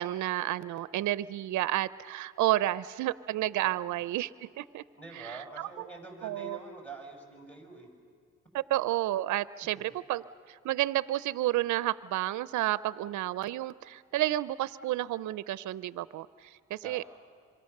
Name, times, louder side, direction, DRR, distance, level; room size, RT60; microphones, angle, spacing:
voice 1, 0.0-4.8 5.2-5.7 6.2-6.6 8.5-17.0, right 15 dB, 75° right, 17 dB, 0.6 m, -31 dB
voice 2, 3.6-3.9 4.9-7.9 16.8-17.1, right 3 dB, 5° left, 1 dB, 5.6 m, -46 dB
26.0 x 24.0 x 6.6 m, 2.1 s
cardioid pair, 90°, 30 cm